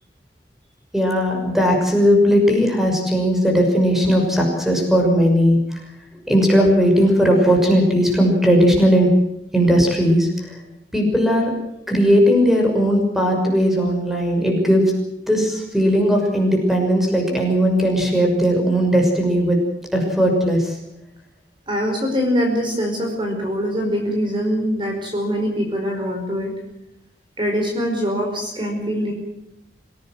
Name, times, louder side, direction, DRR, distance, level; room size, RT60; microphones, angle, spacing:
voice 1, 0.9-5.6 6.3-9.1 9.5-10.3 10.9-11.5 11.9-14.8 15.3-19.6 19.9-20.7, equal, ahead, 1 dB, 6.2 m, -17 dB
voice 2, 21.7-26.5 27.4-29.1, equal, 30° right, 2 dB, 5.1 m, -23 dB
26.0 x 17.5 x 7.7 m, 0.85 s
head